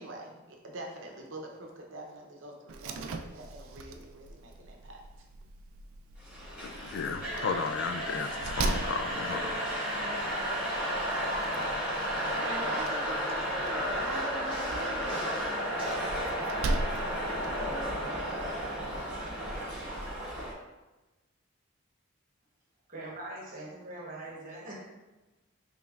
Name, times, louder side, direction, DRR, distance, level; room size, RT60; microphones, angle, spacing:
voice 1, 0.0-5.0 12.4-15.6, right 2 dB, 60° right, 1 dB, 0.7 m, -43 dB
Slam, 2.7-17.7, right 2 dB, 75° right, 0.3 m, -40 dB
sound 1, 6.3-20.5, equal, 5° right, 1.3 m, -33 dB
voice 2, 6.6-9.6, left 5 dB, 60° left, 8 dB, 0.3 m, -34 dB
voice 3, 22.9-24.7, right 2 dB, 40° right, -3 dB, 1.1 m, -42 dB
5.2 x 3.3 x 2.4 m, 1.1 s
head